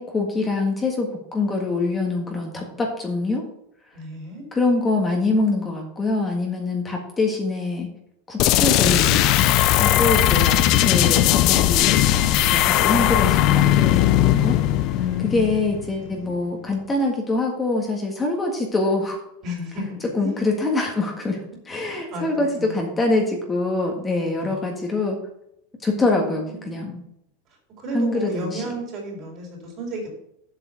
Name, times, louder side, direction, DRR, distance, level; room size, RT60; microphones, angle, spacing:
voice 1, 0.0-3.4 4.5-7.9 8.3-9.3 9.8-14.6 15.3-19.2 20.2-25.2 25.8-27.0 27.9-28.6, left 2 dB, 15° left, 1 dB, 1.7 m, -24 dB
voice 2, 3.9-4.4 14.9-15.7 16.0-16.3 19.4-20.5 21.9-22.9 24.4-24.7 25.9-27.1 27.8-30.1, left 1 dB, 45° right, 0 dB, 4.1 m, -33 dB
sound 1, 8.4-16.0, left 13 dB, 50° left, 0.6 m, -18 dB
7.8 x 5.8 x 7.1 m, 0.77 s
supercardioid pair, 130°, 0 cm